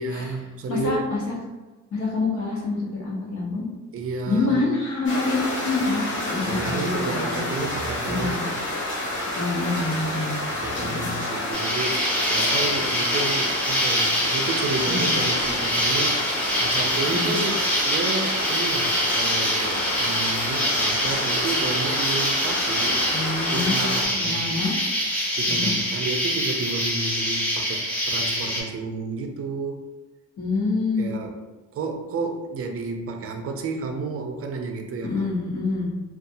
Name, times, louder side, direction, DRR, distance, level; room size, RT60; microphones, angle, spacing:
voice 1, 0.0-1.0 3.9-4.6 6.4-8.6 10.5-16.2 16.6-23.0 23.5-24.5 25.4-29.8 31.0-31.3 31.7-35.2, right 3 dB, 50° right, 4 dB, 0.5 m, -31 dB
voice 2, 0.7-1.3 1.9-3.7 4.3-7.4 8.1-8.4 9.3-10.4 10.7-11.1 14.9-15.2 17.1-17.3 23.1-23.8 24.2-24.7 25.5-25.7 30.4-31.2 35.0-35.9, left 3 dB, 65° left, -4 dB, 1.0 m, -26 dB
sound 1, 5.0-24.0, left 1 dB, 40° left, 1.0 m, -29 dB
Insect, 11.5-28.6, equal, 5° left, 0.8 m, -25 dB
2.6 x 2.3 x 2.6 m, 1.1 s
cardioid pair, 90°, 30 cm